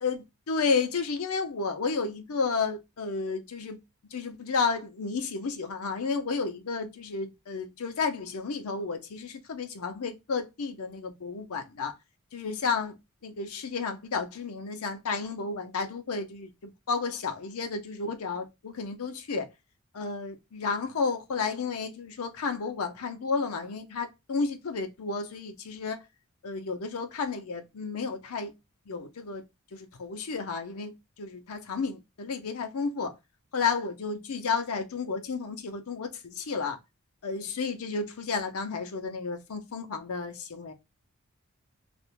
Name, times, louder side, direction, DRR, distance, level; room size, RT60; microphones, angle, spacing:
voice 1, 0.0-3.8 4.1-11.9 12.3-12.9 13.2-19.5 19.9-26.0 26.4-28.5 28.9-29.4 29.7-33.1 33.5-36.8 37.2-40.7, left 4 dB, 80° left, 0.6 m, -32 dB
2.5 x 2.1 x 2.9 m
head